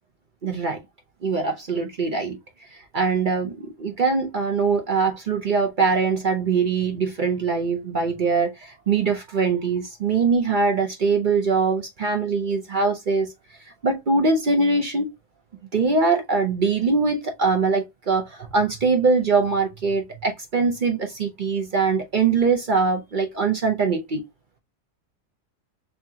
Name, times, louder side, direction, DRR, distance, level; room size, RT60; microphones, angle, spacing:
voice 1, 0.4-0.8 1.2-2.4 2.7-13.3 13.8-15.1 15.7-24.2, right 4 dB, 50° right, 0.6 m, -22 dB
4.4 x 2.8 x 2.7 m
omnidirectional pair, 1.7 m